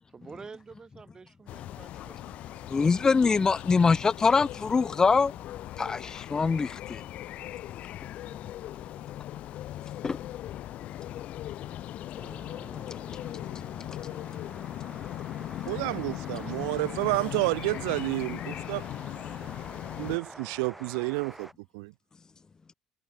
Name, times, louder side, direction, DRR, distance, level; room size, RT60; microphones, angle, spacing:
voice 1, 0.1-3.1, right 5 dB, 30° right, 5.3 m, -49 dB
sound 1, 1.5-20.2, left 14 dB, 55° left, 3.0 m, -39 dB
voice 2, 2.7-5.4 5.7-7.0 9.2-9.3 9.8-10.3 11.0-15.7 19.3-19.4, left 4 dB, 25° left, 0.4 m, -27 dB
sound 2, 12.2-21.5, right 1 dB, 5° right, 1.3 m, -48 dB
voice 3, 15.7-18.9 20.0-21.5 21.7-21.9, right 30 dB, 65° right, 0.4 m, -30 dB
figure-of-eight pair, 55°, 3 cm